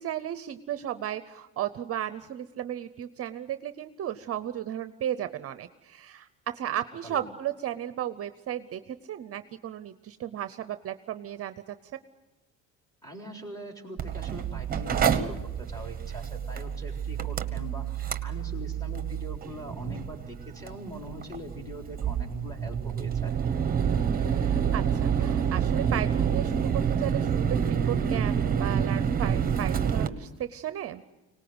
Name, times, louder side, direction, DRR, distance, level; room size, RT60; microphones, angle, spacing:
voice 1, 0.0-6.3 6.5-11.8 24.1-31.0, right 11 dB, 40° right, 11 dB, 0.7 m, -35 dB
voice 2, 13.0-23.3, equal, 10° left, 1 dB, 3.9 m, -42 dB
Mechanical fan, 14.0-30.1, right 8 dB, 25° right, 1.1 m, -28 dB
25.0 x 18.5 x 7.9 m, 1.1 s
cardioid pair, 145°, 35 cm